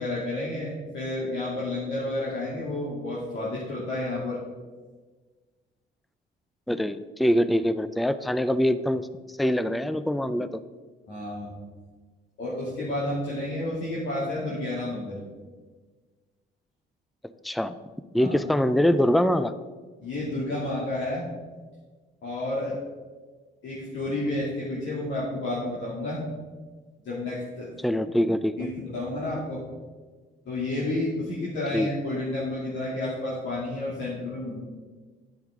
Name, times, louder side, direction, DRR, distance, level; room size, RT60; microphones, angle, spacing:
voice 1, 0.0-4.4 11.1-11.5 12.4-15.2 18.2-18.4 20.0-21.3 22.2-22.8 23.6-26.2 27.0-27.7 28.6-29.6 30.5-34.6, left 1 dB, 70° left, -7 dB, 2.5 m, -30 dB
voice 2, 6.7-9.1 9.4-10.6 17.4-17.8 18.1-19.5 27.8-28.5 31.7-31.9, equal, ahead, 13 dB, 0.4 m, -24 dB
10.0 x 8.1 x 3.7 m, 1.4 s
cardioid pair, 90°, 20 cm